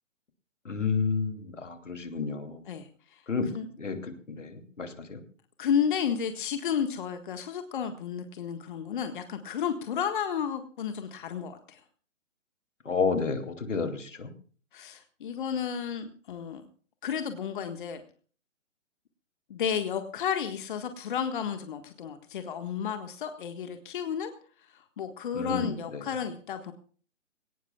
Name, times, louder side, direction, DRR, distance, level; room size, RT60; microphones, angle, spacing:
voice 1, 0.6-2.6 3.3-3.5 3.8-5.2 12.8-14.3 25.3-26.0, left 5 dB, 75° left, 6 dB, 2.8 m, -31 dB
voice 2, 2.6-3.2 3.5-3.7 5.6-11.8 14.7-16.6 17.0-18.0 19.5-24.3 24.7-26.7, left 8 dB, 40° left, 7 dB, 1.6 m, -32 dB
21.0 x 18.5 x 2.3 m, 0.43 s
figure-of-eight pair, 135°, 37 cm